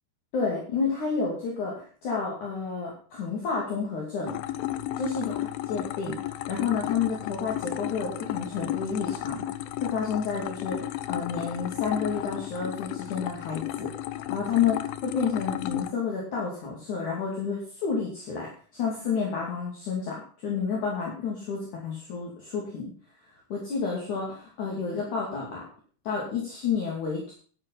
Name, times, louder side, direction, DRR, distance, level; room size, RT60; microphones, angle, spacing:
voice 1, 0.3-4.3 5.0-9.5 9.8-13.9 14.3-22.9 23.5-25.6 26.0-27.3, left 5 dB, 50° left, -3 dB, 3.8 m, -30 dB
sound 1, 4.3-15.9, left 13 dB, 80° left, 2.2 m, -33 dB
12.0 x 7.6 x 5.7 m, 0.43 s
omnidirectional pair, 4.7 m